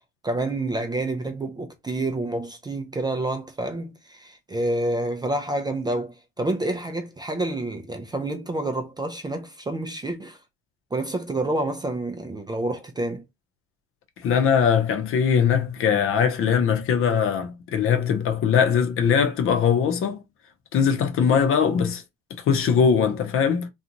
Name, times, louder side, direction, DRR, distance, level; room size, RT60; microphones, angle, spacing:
voice 1, 0.2-10.4 10.9-13.2, right 2 dB, 15° right, 0.5 m, -28 dB
voice 2, 14.2-20.2 20.7-22.0 22.5-23.7, left 7 dB, 45° left, 0.8 m, -21 dB
2.5 x 2.4 x 2.9 m
hypercardioid pair, 80°, 31 cm